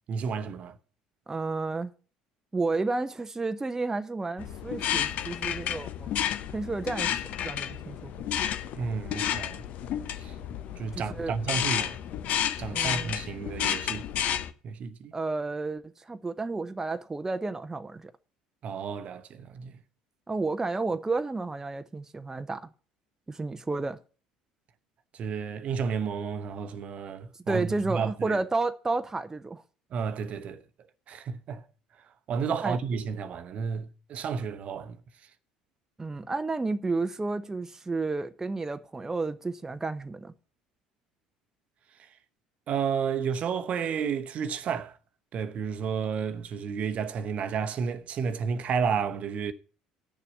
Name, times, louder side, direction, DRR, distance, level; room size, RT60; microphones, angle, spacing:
voice 1, 0.1-0.8 8.8-9.6 10.2-10.3 10.8-12.0 12.6-14.1 14.6-15.1 18.6-19.8 25.1-28.4 29.9-30.6 31.1-31.6 32.3-35.0 42.7-45.0 45.3-49.5, right 6 dB, 45° right, 0.9 m, -31 dB
voice 2, 1.3-1.9 2.5-6.1 6.5-8.1 10.9-11.3 12.7-13.1 15.1-18.1 20.3-22.7 23.3-24.0 27.5-29.6 32.6-32.8 36.0-40.3, right 3 dB, 15° right, 0.7 m, -31 dB
sound 1, 4.4-14.5, left 10 dB, 50° left, 0.9 m, -31 dB
10.0 x 6.9 x 7.2 m
figure-of-eight pair, 60°, 3 cm